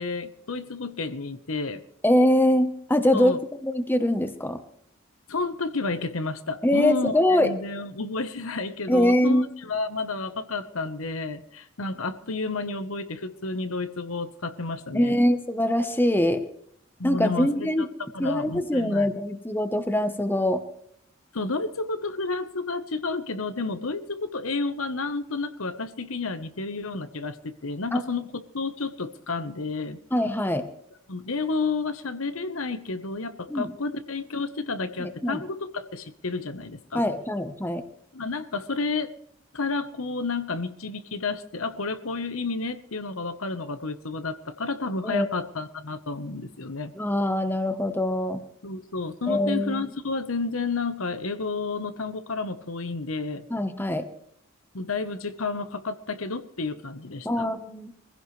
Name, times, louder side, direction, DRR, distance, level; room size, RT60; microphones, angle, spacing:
voice 1, 0.0-1.8 3.1-3.4 5.3-15.2 17.0-17.7 18.1-19.1 21.3-28.3 28.5-30.0 31.1-37.0 38.1-39.1 39.5-46.9 48.6-53.4 54.7-57.5, left 3 dB, 80° left, 10 dB, 1.1 m, -31 dB
voice 2, 2.0-4.6 6.6-7.5 8.9-9.5 14.9-16.5 17.0-17.9 18.2-20.6 27.9-28.0 30.1-30.7 33.5-33.7 35.0-35.4 36.9-37.8 45.0-45.3 47.0-48.4 49.3-49.8 53.5-54.0 57.2-57.9, left 1 dB, 10° left, 8 dB, 1.0 m, -23 dB
23.0 x 16.0 x 3.3 m, 0.68 s
head